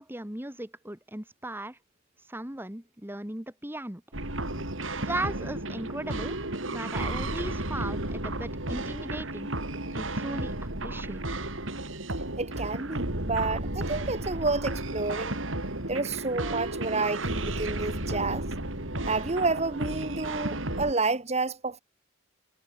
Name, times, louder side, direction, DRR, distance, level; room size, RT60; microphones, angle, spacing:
voice 1, 0.0-1.8 2.3-4.0 4.9-6.4 6.7-9.5 9.9-11.2, right 1 dB, 10° right, 2.0 m, -37 dB
sound 1, 4.1-20.9, right 1 dB, 80° right, 6.0 m, -33 dB
voice 2, 12.4-15.4 15.9-18.5 19.1-21.8, right 3 dB, 35° right, 1.7 m, -30 dB
head